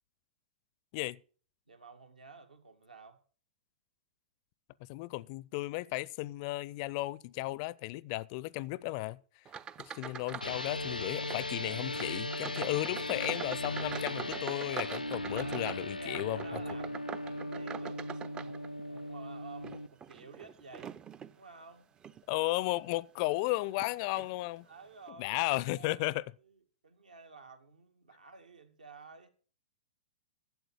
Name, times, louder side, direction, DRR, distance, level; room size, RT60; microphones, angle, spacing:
voice 1, 1.7-3.2 11.6-11.9 15.3-18.6 18.9-21.0 21.3-21.9 24.6-26.1 26.4-29.3, right 4 dB, 75° right, 1.8 m, -52 dB
voice 2, 4.9-9.2 9.9-16.6 22.3-24.7 25.2-26.2, left 19 dB, 40° left, 0.4 m, -34 dB
sound 1, 9.5-10.6 10.9-11.5 11.9-19.0 19.5-21.4 22.0-22.2 22.8-22.9 23.8-23.9 24.2-24.3, right 7 dB, 20° right, 0.4 m, -44 dB
sound 2, 10.4-19.9, left 1 dB, 90° left, 0.5 m, -38 dB
11.5 x 7.8 x 6.3 m
figure-of-eight pair, 105°, 4 cm